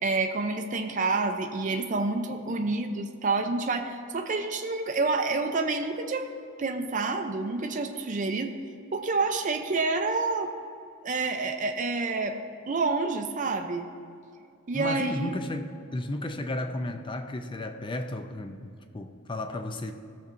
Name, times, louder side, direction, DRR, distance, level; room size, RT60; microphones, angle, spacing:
voice 1, 0.0-6.3 6.6-8.5 8.9-10.5 11.0-12.4 12.7-13.9 14.7-15.3, right 3 dB, 35° right, 4 dB, 0.5 m, -28 dB
voice 2, 14.7-19.9, left 1 dB, 20° left, 7 dB, 0.5 m, -33 dB
16.0 x 6.7 x 2.6 m, 2.5 s
head